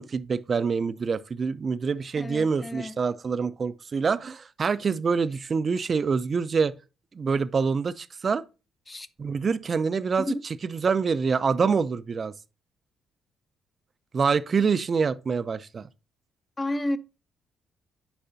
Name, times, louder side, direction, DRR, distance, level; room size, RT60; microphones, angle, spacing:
voice 1, 0.0-6.7 7.1-8.4 9.2-10.3 10.7-12.3 14.1-15.8, right 5 dB, 45° right, 0.5 m, -26 dB
voice 2, 2.2-3.0 8.9-9.1 10.2-10.4 16.6-17.0, left 1 dB, 25° left, 0.6 m, -31 dB
10.0 x 4.8 x 2.7 m
supercardioid pair, 60°, 0 cm